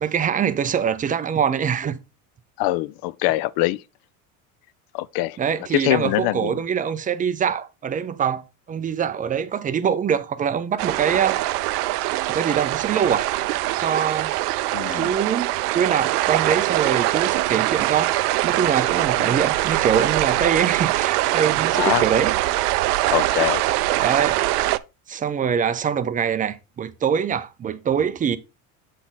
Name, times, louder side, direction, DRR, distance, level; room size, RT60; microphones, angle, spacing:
voice 1, 0.0-2.0 5.4-8.4 8.7-11.4 12.3-13.3 13.8-14.3 14.9-18.2 18.4-22.3 23.7-24.5 25.1-28.4, right 7 dB, 20° right, 0.4 m, -24 dB
voice 2, 2.6-3.8 4.9-5.4 5.7-6.6 14.7-15.1 19.3-19.4 21.7-22.0 23.1-23.6, left 17 dB, 55° left, 0.5 m, -23 dB
sound 1, 10.8-24.8, right 17 dB, 85° right, 0.6 m, -23 dB
7.4 x 4.0 x 3.9 m
supercardioid pair, 105°, 45 cm